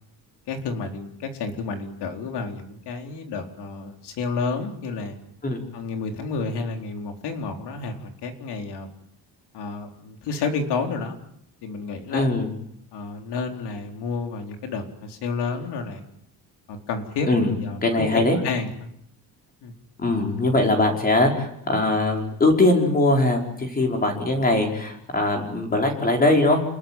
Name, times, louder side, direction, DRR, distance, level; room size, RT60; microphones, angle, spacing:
voice 1, 0.5-5.2 5.7-8.9 9.5-11.2 11.6-12.3 12.9-16.0 16.7-17.3 17.6-18.9 19.6-19.7, left 4 dB, 80° left, 4 dB, 4.4 m, -30 dB
voice 2, 12.1-12.5 17.3-17.5 17.8-18.4 20.0-26.6, left 2 dB, 20° left, 2 dB, 5.3 m, -21 dB
29.0 x 21.0 x 9.3 m, 0.75 s
cardioid pair, 180°, 39 cm